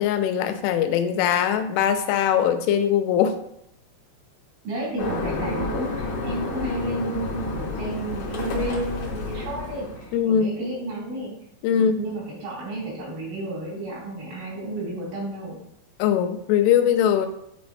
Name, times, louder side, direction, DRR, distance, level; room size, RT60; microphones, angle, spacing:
voice 1, 0.0-3.4 10.1-10.5 11.6-12.0 16.0-17.3, left 9 dB, 90° left, 7 dB, 3.0 m, -21 dB
voice 2, 4.6-11.3 11.8-15.6, right 1 dB, 90° right, -5 dB, 4.9 m, -31 dB
sound 1, 5.0-10.2, left 3 dB, 75° left, 1.7 m, -30 dB
9.6 x 4.1 x 2.6 m, 0.78 s
omnidirectional pair, 5.3 m